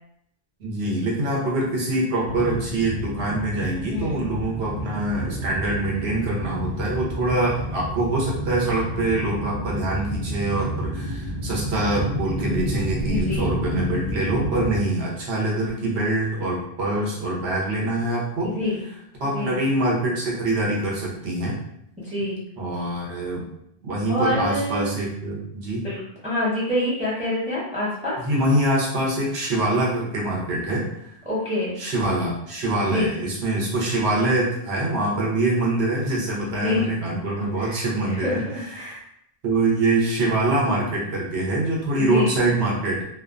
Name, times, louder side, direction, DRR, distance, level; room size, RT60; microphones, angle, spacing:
voice 1, 0.6-18.5 19.2-21.6 22.6-23.5 23.8-25.9 28.2-31.1 31.8-39.0 39.4-43.0, right 2 dB, 80° right, -4 dB, 1.1 m, -24 dB
sound 1, 2.3-14.8, equal, 35° right, 0.9 m, -30 dB
voice 2, 3.9-4.2 13.1-13.5 18.4-18.8 19.3-19.6 22.0-22.4 24.1-24.9 25.8-26.0 26.2-28.2 31.3-31.8 32.9-33.1 36.5-36.9 37.6-37.8 38.0-38.4 38.7-39.0 42.0-42.4, left 1 dB, 10° right, -6 dB, 0.6 m, -26 dB
2.4 x 2.2 x 2.4 m, 0.74 s
omnidirectional pair, 1.1 m